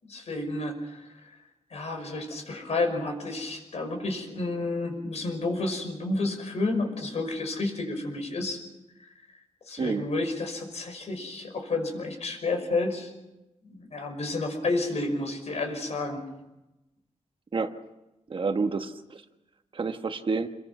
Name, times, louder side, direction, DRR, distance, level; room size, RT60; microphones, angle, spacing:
voice 1, 0.0-1.1 1.7-8.6 9.7-13.1 13.6-16.3, left 2 dB, 65° left, 4 dB, 5.7 m, -30 dB
voice 2, 9.8-10.1 17.5-17.7 18.3-19.2 19.7-20.5, right 4 dB, 45° right, 7 dB, 1.4 m, -29 dB
27.0 x 22.5 x 6.2 m, 0.98 s
wide cardioid pair, 140°, 12 cm